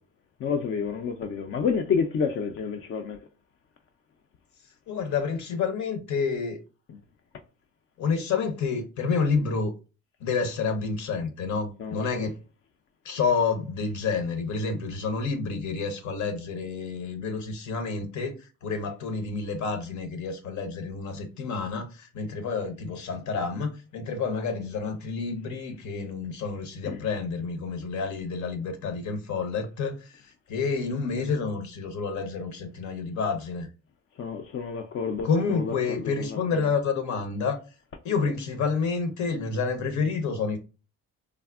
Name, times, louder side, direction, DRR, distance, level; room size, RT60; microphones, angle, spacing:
voice 1, 0.4-3.2 6.9-7.0 11.8-12.3 26.8-27.0 34.2-36.7, left 6 dB, 45° left, 0.4 m, -30 dB
voice 2, 4.9-6.6 8.0-9.7 10.2-12.3 13.0-33.7 35.2-37.6 38.0-40.6, left 5 dB, 70° left, 0.8 m, -29 dB
3.4 x 2.0 x 2.3 m
cardioid pair, 90°, 30 cm